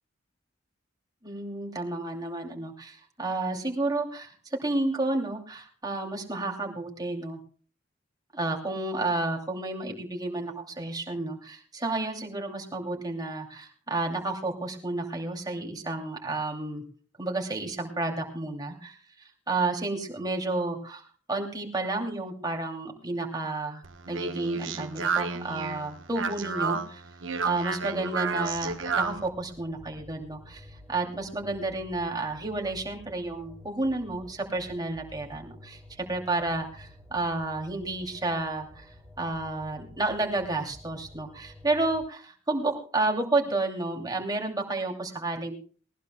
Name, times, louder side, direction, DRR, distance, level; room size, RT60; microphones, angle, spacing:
voice 1, 1.2-7.4 8.3-16.8 17.2-27.0 27.4-45.5, right 2 dB, 20° right, 1 dB, 2.7 m, -31 dB
Speech, 23.8-29.3, right 4 dB, 90° right, 1.2 m, -31 dB
sound 1, 28.4-42.0, left 1 dB, ahead, 6.3 m, -51 dB
19.0 x 19.0 x 2.2 m, 0.41 s
head